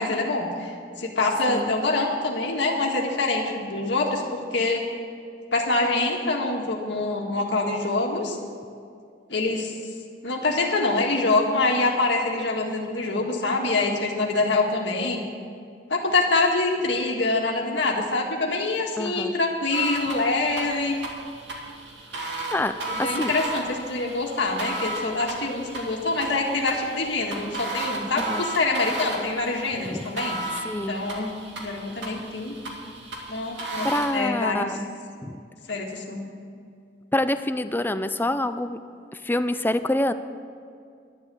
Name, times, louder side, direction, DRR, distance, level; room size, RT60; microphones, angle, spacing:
voice 1, 0.0-4.8 5.5-8.4 9.3-9.7 10.2-15.2 15.9-21.0 22.8-30.6 30.9-31.3 31.6-32.5 33.3-33.9 34.1-34.7 35.7-36.2, left 2 dB, 70° left, 0 dB, 1.8 m, -25 dB
voice 2, 19.0-19.3 22.5-23.3 28.2-28.5 30.6-31.0 33.8-34.8 35.2-35.4 37.1-38.8 39.1-40.1, left 1 dB, 10° left, 11 dB, 0.5 m, -26 dB
sound 1, 19.7-34.1, right 2 dB, 75° right, 2.4 m, -34 dB
11.5 x 11.0 x 6.9 m, 2.3 s
head